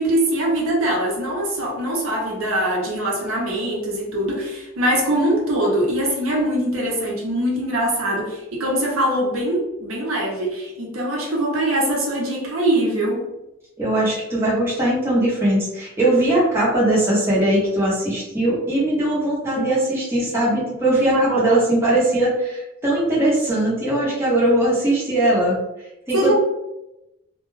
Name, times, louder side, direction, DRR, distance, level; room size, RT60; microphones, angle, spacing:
voice 1, 0.0-13.3 21.1-21.6 26.1-26.3, right 1 dB, 75° right, -2 dB, 0.7 m, -22 dB
voice 2, 13.8-25.6 26.1-26.3, right 1 dB, 10° right, -7 dB, 0.7 m, -20 dB
2.2 x 2.2 x 3.0 m, 0.92 s
head